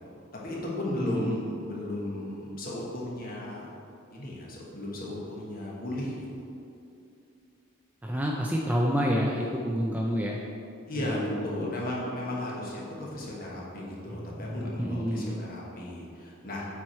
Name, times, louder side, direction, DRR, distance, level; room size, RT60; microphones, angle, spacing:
voice 1, 0.4-3.7 4.1-6.3 10.9-16.7, left 1 dB, 40° left, -4 dB, 1.3 m, -35 dB
voice 2, 1.0-1.4 8.0-10.4 10.9-11.7 14.4-15.4, equal, 10° right, -1 dB, 0.3 m, -29 dB
7.7 x 4.6 x 4.4 m, 2.6 s
head